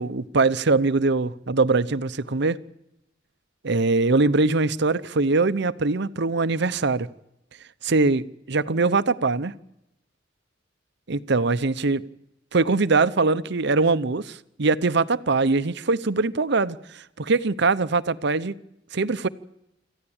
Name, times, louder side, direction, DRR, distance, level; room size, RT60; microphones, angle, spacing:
voice 1, 0.0-2.6 3.6-7.1 7.8-9.5 11.1-12.0 12.5-16.8 17.2-18.5 18.9-19.3, right 3 dB, 65° right, 0.8 m, -22 dB
27.0 x 15.0 x 8.8 m
head